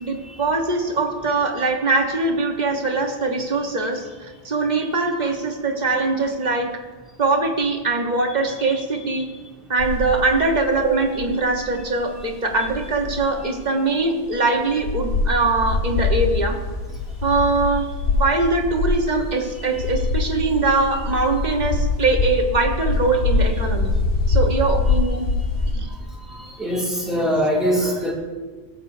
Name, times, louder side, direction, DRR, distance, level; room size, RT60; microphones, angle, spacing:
voice 1, 0.0-6.7 7.2-9.3 9.7-16.6 17.2-17.8 18.1-23.9 24.3-25.2 25.7-25.9 27.2-27.4 27.8-28.0, right 3 dB, 40° right, 2 dB, 1.2 m, -22 dB
sound 1, 9.8-13.4 14.0-14.1 14.2-14.3 14.7-25.7, left 3 dB, 85° left, 1.5 m, -24 dB
voice 2, 26.6-28.1, equal, ahead, -6 dB, 2.4 m, -21 dB
19.0 x 7.8 x 2.7 m, 1.3 s
omnidirectional pair, 1.2 m